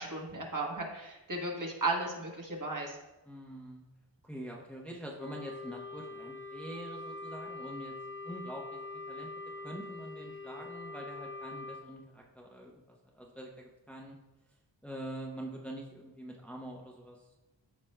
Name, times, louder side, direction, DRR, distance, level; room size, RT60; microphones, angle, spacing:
voice 1, 0.0-3.0, right 2 dB, 40° right, 0 dB, 1.3 m, -35 dB
voice 2, 3.2-3.8 4.2-7.9 8.2-8.8 9.1-9.3 9.6-12.7 13.1-14.2 14.8-17.4, right 1 dB, 5° left, -2 dB, 0.8 m, -45 dB
Wind instrument woodwind instrument, 5.2-11.9, left 3 dB, 30° left, 0.4 m, -44 dB
13.5 x 5.0 x 2.2 m, 1.0 s
wide cardioid pair, 95°, 46 cm